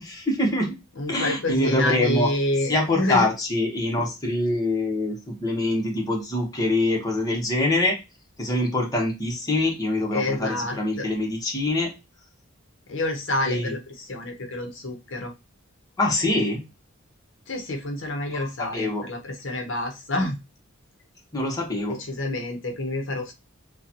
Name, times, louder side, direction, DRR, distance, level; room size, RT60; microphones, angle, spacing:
voice 1, 0.0-0.8 1.1-2.3 2.7-7.9 8.4-11.9 13.4-13.7 16.0-16.6 18.3-19.1 21.3-22.0, left 2 dB, 15° left, -1 dB, 1.0 m, -24 dB
voice 2, 1.0-3.3 10.1-11.1 12.9-15.3 17.5-20.4 21.9-23.3, left 1 dB, 60° left, 4 dB, 0.9 m, -28 dB
6.5 x 2.3 x 2.9 m, 0.26 s
head